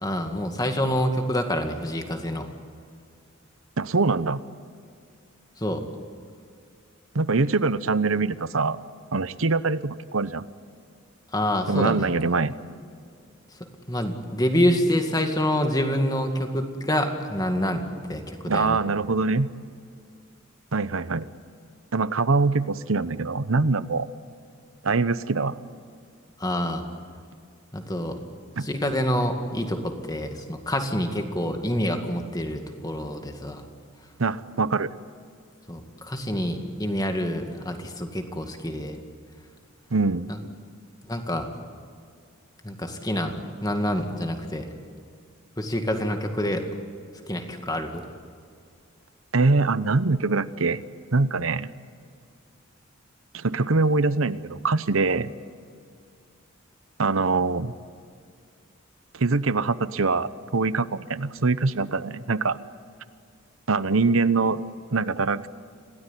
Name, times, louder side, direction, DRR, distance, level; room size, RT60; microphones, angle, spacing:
voice 1, 0.0-2.5 5.6-5.8 11.3-12.1 13.9-18.8 26.4-26.8 27.7-28.2 28.6-33.6 35.7-39.0 40.3-40.4 41.1-41.5 42.6-44.7 45.6-46.6 47.3-48.0, equal, 20° left, 5 dB, 2.1 m, -27 dB
voice 2, 3.8-4.4 7.1-8.8 9.1-10.5 11.7-12.5 18.5-19.5 20.7-21.3 21.9-24.1 24.8-25.6 28.6-28.7 34.2-34.9 39.9-40.3 49.3-50.8 51.1-51.7 53.3-55.3 57.0-57.7 59.1-62.6 63.7-64.6 64.9-65.5, right 3 dB, 80° right, 15 dB, 0.9 m, -23 dB
26.5 x 17.5 x 9.9 m, 2.3 s
head